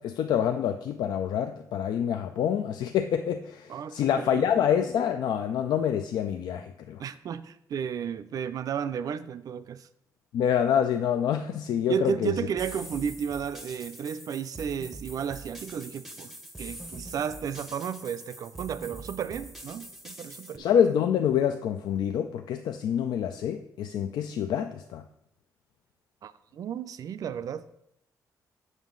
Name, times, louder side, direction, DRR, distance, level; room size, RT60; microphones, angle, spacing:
voice 1, 0.0-7.0 10.3-12.4 20.6-25.0, left 9 dB, 85° left, 0.4 m, -26 dB
voice 2, 3.7-4.5 7.0-9.9 11.9-16.3 16.6-20.7 26.2-27.7, right 7 dB, 55° right, 0.4 m, -33 dB
sound 1, 12.6-20.6, right 1 dB, ahead, 0.6 m, -44 dB
7.2 x 6.1 x 3.7 m
cardioid pair, 130°, 7 cm